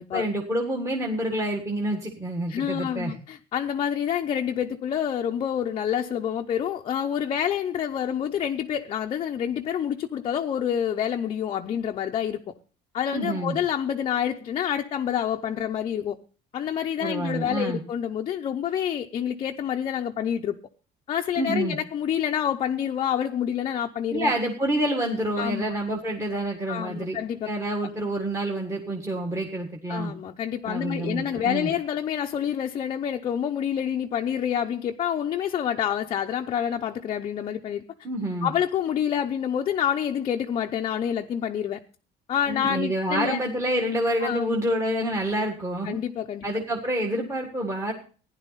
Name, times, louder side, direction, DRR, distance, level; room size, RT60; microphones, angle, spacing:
voice 1, 0.1-3.1 13.1-13.6 17.0-17.8 21.4-21.8 24.1-27.2 27.4-30.1 30.7-31.7 38.0-38.5 42.5-46.0 46.4-47.9, right 1 dB, 15° right, 1.7 m, -28 dB
voice 2, 2.5-12.5 12.9-16.2 16.5-20.6 21.1-24.3 25.4-25.7 26.7-27.5 29.9-37.8 38.4-41.8 42.3-43.4 44.2-44.5 45.8-46.5, left 9 dB, 30° left, 0.7 m, -27 dB
15.5 x 10.5 x 4.0 m
cardioid pair, 175°, 18 cm